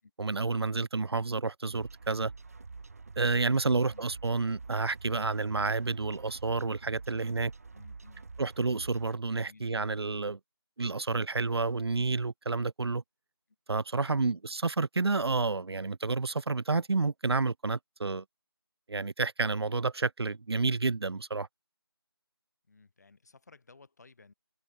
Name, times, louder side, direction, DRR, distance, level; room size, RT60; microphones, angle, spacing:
voice 1, 0.2-2.3 3.2-7.5 8.4-10.4 10.8-13.0 13.7-18.2 18.9-21.5, right 3 dB, 85° right, 0.5 m, -30 dB
sound 1, 1.7-9.2, right 4 dB, 35° right, 1.1 m, -47 dB
voice 2, 7.7-8.2 9.4-9.7 13.9-14.3 22.7-24.3, left 4 dB, 40° left, 5.6 m, -58 dB
figure-of-eight pair, 170°, 13 cm